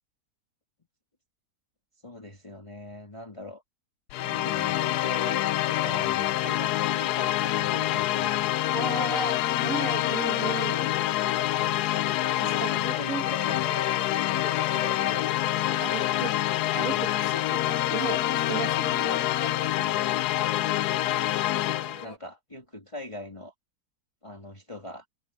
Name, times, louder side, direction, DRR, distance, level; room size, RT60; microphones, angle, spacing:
voice 1, 2.0-3.6 4.3-8.9 12.5-13.8 14.7-15.2 22.0-23.5 24.2-25.1, left 2 dB, 20° left, 2.3 m, -41 dB
sound 1, 4.1-22.1, left 15 dB, 75° left, 1.1 m, -26 dB
voice 2, 4.2-4.5 8.7-10.9 12.4-13.2 15.8-16.4 16.7-19.3, right 5 dB, 55° right, 1.9 m, -35 dB
sound 2, 9.1-22.2, left 1 dB, 60° left, 8.6 m, -43 dB
omnidirectional pair, 1.8 m